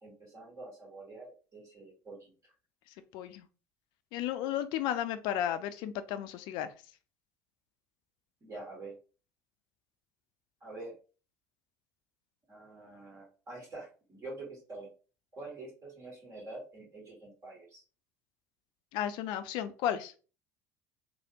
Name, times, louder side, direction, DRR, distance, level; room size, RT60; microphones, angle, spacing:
voice 1, 0.0-2.3 8.4-8.9 10.6-11.0 12.5-14.9 15.3-17.8, right 2 dB, 35° right, -2 dB, 1.6 m, -46 dB
voice 2, 3.1-3.4 4.1-6.7 18.9-20.1, left 11 dB, 55° left, 11 dB, 0.4 m, -33 dB
3.2 x 2.2 x 2.9 m, 0.36 s
figure-of-eight pair, 65°, 9 cm